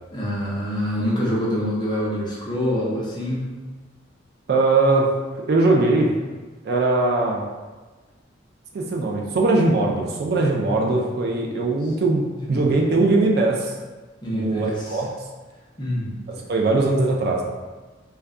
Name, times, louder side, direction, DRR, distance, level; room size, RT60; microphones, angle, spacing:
voice 1, 0.1-3.5 12.3-12.8 14.2-15.0 15.8-16.1, equal, 20° left, -6 dB, 0.6 m, -26 dB
voice 2, 4.5-5.1 5.4-6.1 6.6-7.4 8.7-12.2 12.5-13.7 14.3-15.1 16.3-17.4, right 2 dB, 50° right, 0 dB, 0.3 m, -20 dB
2.3 x 2.2 x 3.6 m, 1.3 s
head